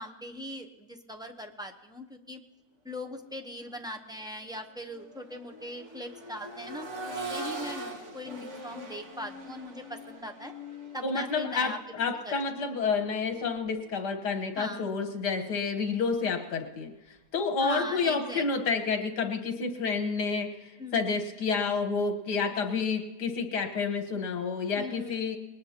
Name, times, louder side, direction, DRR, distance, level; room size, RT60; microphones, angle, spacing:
voice 1, 0.0-2.4 2.8-10.5 10.9-11.8 12.2-12.3 14.6-14.9 17.6-18.4 20.8-21.1 24.8-25.3, left 1 dB, 5° right, 3 dB, 0.4 m, -40 dB
Accelerating revving vroom, 3.5-3.7 4.1-14.0 15.7-15.8, right 1 dB, 45° right, 2.1 m, -43 dB
voice 2, 11.0-16.9 17.3-25.4, left 5 dB, 80° left, 4 dB, 1.9 m, -29 dB
21.0 x 19.0 x 2.9 m, 1.1 s
omnidirectional pair, 1.8 m